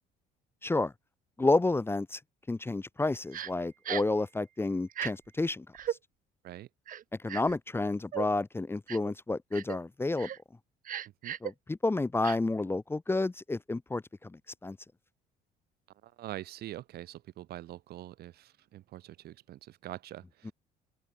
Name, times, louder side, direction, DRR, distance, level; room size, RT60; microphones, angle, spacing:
voice 1, 1.4-2.2 2.5-5.6 7.2-10.3 11.4-14.3 14.6-14.8 20.4-20.5, left 2 dB, 15° left, 1.1 m, -30 dB
Crying sobbing, 3.3-3.5 3.8-4.2 4.9-5.1 5.7-6.0 6.9-7.6 8.1-8.3 8.9-9.1 9.5-9.8 10.2-10.4 10.8-11.5 12.2-12.4, right 10 dB, 55° right, 2.8 m, -36 dB
voice 2, 16.0-20.5, right 14 dB, 70° right, 3.1 m, -44 dB
open air
cardioid pair, 110°, 17 cm